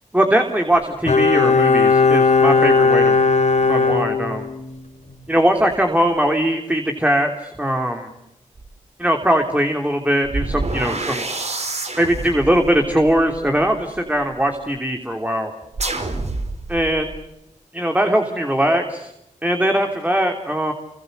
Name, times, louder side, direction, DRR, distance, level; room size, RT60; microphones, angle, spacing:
voice 1, 0.1-3.2 3.7-4.5 5.3-8.1 9.0-11.2 12.0-15.5 16.7-17.1 17.7-19.1 19.4-20.7, right 1 dB, 10° right, 4 dB, 3.3 m, -20 dB
Bowed string instrument, 1.1-4.8 5.1-5.2, left 4 dB, 60° left, 3.3 m, -16 dB
sound 1, 8.6-8.7 10.2-14.3 15.7-17.2, right 2 dB, 55° right, 4.8 m, -28 dB
29.5 x 24.5 x 6.8 m, 0.86 s
cardioid pair, 60°, 14 cm